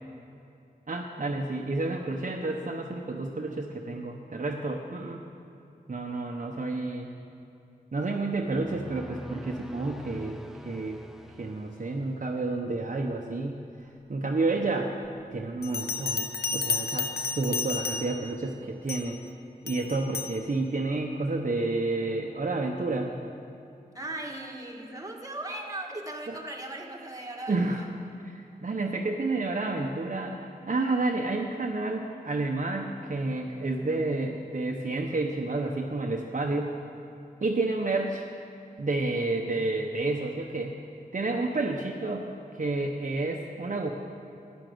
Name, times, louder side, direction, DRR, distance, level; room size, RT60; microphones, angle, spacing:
voice 1, 0.9-5.2 5.9-7.1 7.9-11.0 11.4-14.9 15.3-19.2 19.6-23.1 26.3-26.4 27.5-27.8 28.2-36.7 37.4-38.2 38.8-40.7 41.1-42.3 42.5-43.9, right 2 dB, 50° right, 1 dB, 1.0 m, -30 dB
sound 1, 8.3-12.7, equal, 5° right, 0.5 m, -45 dB
Bell, 15.6-18.3 18.9-19.2 19.7-20.4, left 4 dB, 75° left, 0.7 m, -32 dB
voice 2, 23.9-27.8 33.7-34.0, right 1 dB, 20° right, 1 dB, 1.8 m, -38 dB
11.5 x 10.5 x 7.8 m, 2.7 s
wide cardioid pair, 90°, 16 cm